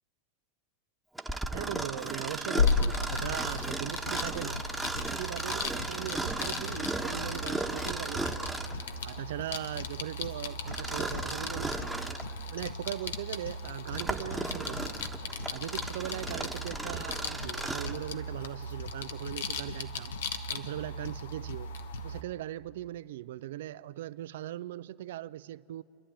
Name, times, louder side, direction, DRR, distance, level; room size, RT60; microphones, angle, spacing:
Mechanisms, 1.2-8.8 10.7-12.3 12.9-13.0 13.6-18.0, right 2 dB, 5° right, 1.1 m, -36 dB
voice 1, 1.5-4.6 5.0-8.6 9.0-12.1 12.5-15.1 15.5-20.1 20.5-21.7 22.0-25.8, right 13 dB, 75° right, 0.4 m, -39 dB
sound 1, 2.6-22.2, left 3 dB, 85° left, 1.0 m, -36 dB
Bass guitar, 5.9-10.7 11.0-12.2, right 8 dB, 35° right, 1.0 m, -53 dB
28.5 x 11.0 x 8.7 m
hypercardioid pair, 100°, 0 cm